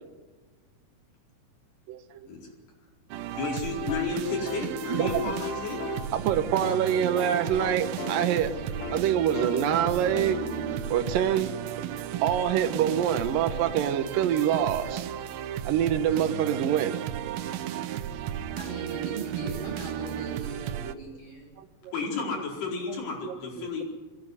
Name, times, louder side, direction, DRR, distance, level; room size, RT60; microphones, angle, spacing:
voice 1, 1.9-2.3 4.9-5.3 6.1-8.6 8.9-10.4 10.9-11.5 12.2-15.1 15.7-17.0 21.8-21.9 22.9-23.0 23.2-23.4, right 9 dB, 70° right, 8 dB, 2.3 m, -25 dB
sound 1, 3.1-20.9, right 10 dB, 90° right, 2.0 m, -34 dB
voice 2, 3.4-5.8 21.9-23.8, left 4 dB, 60° left, -1 dB, 6.4 m, -32 dB
sound 2, 3.9-12.5, left 11 dB, 90° left, 3.5 m, -40 dB
voice 3, 18.5-21.5, right 3 dB, 45° left, -1 dB, 9.6 m, -38 dB
22.5 x 16.5 x 9.6 m, 1.3 s
omnidirectional pair, 5.4 m